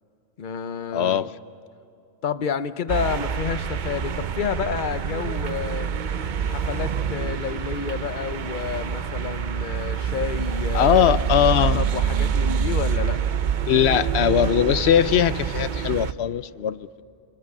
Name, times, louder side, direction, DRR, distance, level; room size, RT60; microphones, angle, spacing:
voice 1, 0.4-1.2 2.2-5.9 6.5-11.1 11.6-13.2 16.2-16.3, left 7 dB, 55° left, 12 dB, 0.9 m, -30 dB
voice 2, 0.9-1.3 10.7-11.8 13.7-17.0, left 9 dB, 90° left, 15 dB, 1.0 m, -20 dB
sound 1, 2.9-16.1, right 7 dB, 55° right, 0.8 m, -26 dB
sound 2, 4.1-10.5, left 1 dB, 90° right, 5.2 m, -52 dB
28.0 x 22.5 x 6.7 m, 2.7 s
omnidirectional pair, 1.1 m